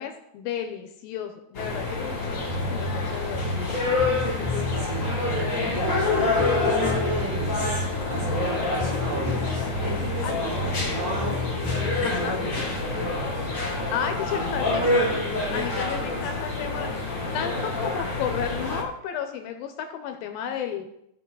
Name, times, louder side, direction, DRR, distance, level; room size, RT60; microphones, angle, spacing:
voice 1, 0.0-3.6 10.2-10.4 12.0-12.4 13.9-15.3 15.5-20.9, left 8 dB, 80° left, 6 dB, 2.3 m, -33 dB
sound 1, 1.5-18.8, left 2 dB, 40° left, 1.1 m, -27 dB
Bass guitar, 2.5-3.7 4.0-6.1 6.4-8.5 8.8-10.9 11.2-12.1, left 1 dB, 65° right, 6.9 m, -31 dB
voice 2, 4.2-11.5 12.0-12.8 14.3-15.2, right 2 dB, 90° right, -5 dB, 6.1 m, -35 dB
16.0 x 6.1 x 3.8 m, 0.79 s
omnidirectional pair, 4.7 m